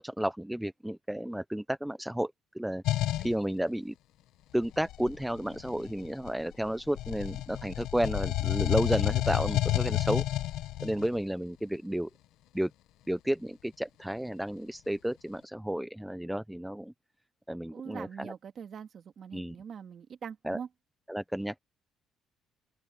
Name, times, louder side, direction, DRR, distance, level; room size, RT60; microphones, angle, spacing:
voice 1, 0.0-2.8 3.2-3.9 4.5-10.2 10.8-12.1 12.5-12.7 13.1-16.9 17.5-18.3 19.3-19.6 20.4-20.6 21.1-21.6, right 1 dB, 5° right, 0.4 m, -32 dB
sound 1, 2.8-3.3 4.6-6.5 6.9-11.1, left 15 dB, 75° left, 0.8 m, -30 dB
voice 2, 17.7-20.7, right 7 dB, 40° right, 2.1 m, -43 dB
open air
cardioid pair, 155°, 0 cm